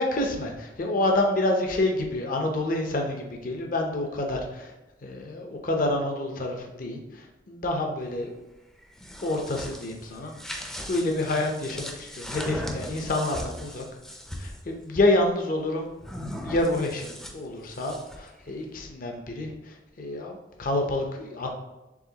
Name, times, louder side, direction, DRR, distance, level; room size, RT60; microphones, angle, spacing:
voice 1, 0.0-4.7 5.0-8.3 9.2-13.8 14.4-15.9 16.4-21.5, left 1 dB, 50° left, 2 dB, 0.6 m, -28 dB
sound 1, 8.8-14.6 16.0-18.3, equal, 5° left, 0.4 m, -38 dB
4.8 x 3.6 x 2.8 m, 1.0 s
head